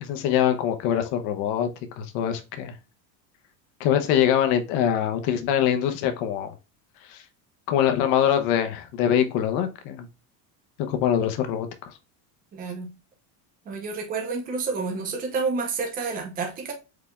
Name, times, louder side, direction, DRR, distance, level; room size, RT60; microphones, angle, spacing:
voice 1, 0.0-1.7 2.0-2.7 3.8-6.5 7.1-7.2 7.7-10.1 10.9-11.7, left 9 dB, 50° left, 0.8 m, -23 dB
voice 2, 12.5-12.9 13.7-16.7, right 4 dB, 20° right, 0.8 m, -29 dB
4.9 x 3.4 x 2.3 m
cardioid pair, 175°, 45 cm